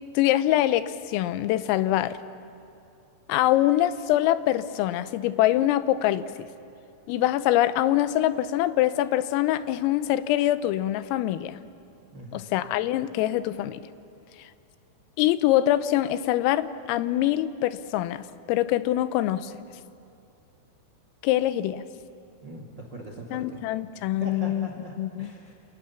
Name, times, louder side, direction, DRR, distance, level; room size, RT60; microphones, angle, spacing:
voice 1, 0.2-2.2 3.3-6.5 7.1-11.6 12.3-13.8 14.4-14.5 15.2-19.5 21.2-21.8 23.3-24.7 25.0-25.3, left 13 dB, 90° left, 13 dB, 3.5 m, -24 dB
voice 2, 12.1-12.5 22.4-23.6 24.2-24.9 25.2-25.5, right 2 dB, 65° right, 2 dB, 1.1 m, -40 dB
29.0 x 28.0 x 7.0 m, 2.6 s
omnidirectional pair, 5.8 m